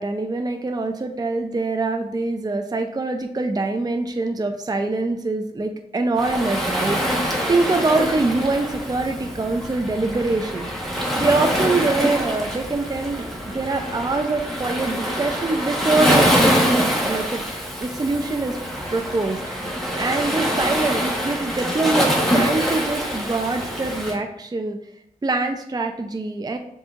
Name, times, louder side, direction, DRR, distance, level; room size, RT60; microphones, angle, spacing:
voice 1, 0.0-10.7 11.2-13.3 13.5-16.4 16.7-17.4 17.8-18.6 18.9-19.4 20.0-24.8 25.2-26.6, right 3 dB, 25° right, 5 dB, 0.4 m, -24 dB
Waves surf, 6.2-24.2, equal, ahead, 1.4 m, -24 dB
7.5 x 2.7 x 2.4 m, 0.77 s
cardioid pair, 45°, 15 cm